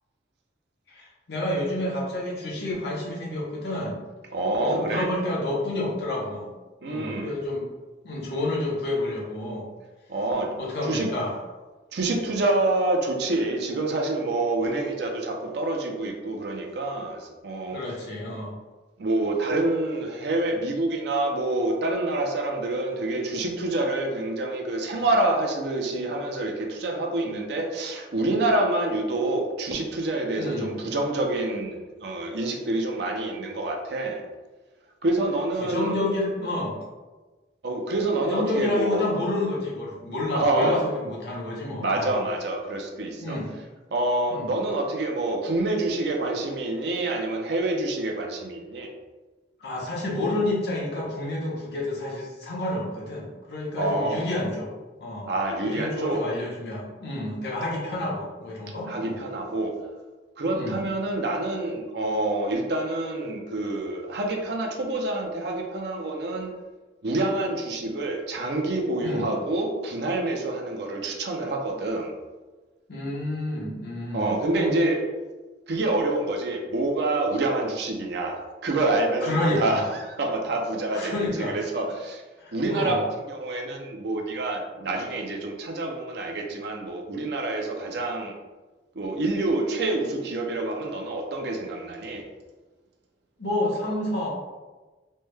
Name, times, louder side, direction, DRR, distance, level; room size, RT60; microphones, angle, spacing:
voice 1, 0.9-4.0 4.6-6.5 6.8-7.7 8.0-9.7 10.6-11.4 17.7-18.5 30.4-30.7 35.6-36.8 38.3-42.2 43.2-43.5 44.3-44.5 49.6-54.7 55.0-55.3 55.6-59.2 60.5-60.8 69.0-69.3 72.9-74.7 79.2-79.9 80.9-81.6 82.4-83.0 93.4-94.3, left 1 dB, 65° left, -4 dB, 0.9 m, -29 dB
voice 2, 4.3-5.1 6.8-7.3 10.1-10.5 10.9-11.1 11.9-17.8 19.0-34.2 35.0-36.0 37.6-39.0 40.3-40.8 41.8-43.4 43.9-48.9 53.8-54.2 55.3-56.2 58.9-59.7 60.4-66.5 67.0-72.1 74.1-75.0 75.7-82.2 82.5-88.3 89.0-92.2, right 2 dB, 60° right, 2 dB, 0.5 m, -27 dB
3.3 x 2.1 x 3.1 m, 1.2 s
head